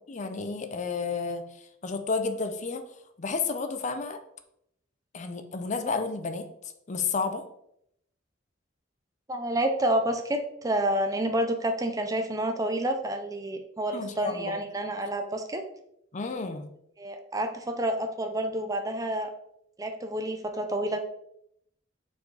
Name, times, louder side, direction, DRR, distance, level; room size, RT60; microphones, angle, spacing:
voice 1, 0.0-2.8 3.2-4.2 5.1-6.5 6.9-7.4 13.9-14.5 16.1-16.7, left 4 dB, 35° left, 8 dB, 0.5 m, -31 dB
voice 2, 9.3-15.6 17.0-19.3 19.8-21.0, right 1 dB, 20° right, 6 dB, 0.5 m, -29 dB
6.9 x 4.5 x 3.3 m, 0.75 s
head